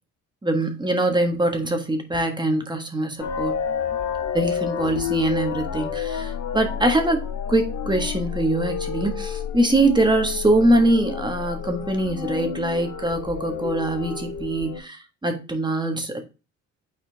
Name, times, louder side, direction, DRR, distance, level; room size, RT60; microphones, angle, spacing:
voice 1, 0.4-3.6 4.3-16.2, right 1 dB, 15° right, 5 dB, 1.4 m, -23 dB
sound 1, 3.2-14.8, left 7 dB, 70° left, 1.1 m, -30 dB
6.7 x 4.3 x 3.4 m, 0.30 s
cardioid pair, 90°, 30 cm